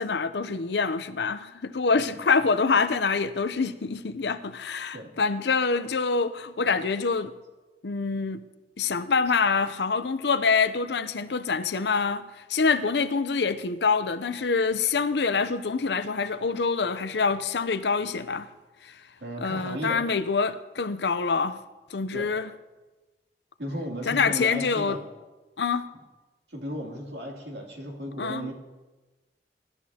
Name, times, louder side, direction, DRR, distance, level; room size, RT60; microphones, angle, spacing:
voice 1, 0.0-7.3 7.8-8.4 8.8-18.5 18.8-19.0 19.4-21.6 21.9-22.5 24.1-25.0 25.6-25.9 28.2-28.5, left 4 dB, 70° left, 0.6 m, -26 dB
voice 2, 19.2-20.0 22.1-22.3 23.6-25.0 26.5-28.5, equal, 70° right, 2.9 m, -35 dB
22.5 x 12.5 x 2.9 m
head